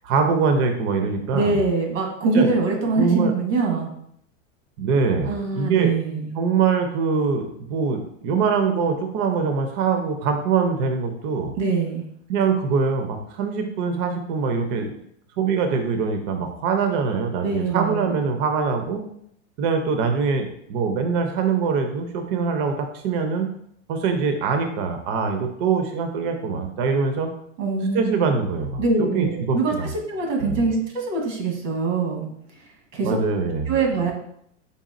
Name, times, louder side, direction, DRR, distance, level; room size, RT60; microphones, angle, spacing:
voice 1, 0.0-1.6 2.3-2.5 3.0-3.3 4.8-5.9 6.3-11.5 12.3-14.9 15.4-19.0 19.6-23.5 23.9-27.3 27.9-29.9 30.4-30.6 33.0-33.7, right 5 dB, 45° right, 5 dB, 0.5 m, -23 dB
voice 2, 1.3-3.9 5.2-6.3 11.5-12.0 17.4-18.2 27.6-28.3 28.8-32.3 32.6-33.2 33.7-34.1, right 4 dB, 90° right, 1 dB, 1.3 m, -23 dB
4.0 x 3.4 x 2.5 m, 0.70 s
supercardioid pair, 140°, 37 cm